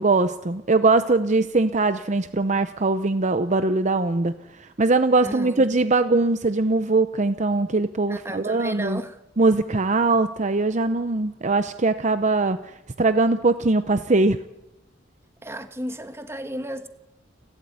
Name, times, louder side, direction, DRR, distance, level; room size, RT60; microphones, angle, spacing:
voice 1, 0.0-9.0 9.4-14.4, right 3 dB, 40° right, 0.7 m, -21 dB
voice 2, 5.2-5.7 8.1-9.2 15.4-16.9, right 1 dB, 15° right, 1.5 m, -33 dB
29.5 x 12.5 x 9.4 m
head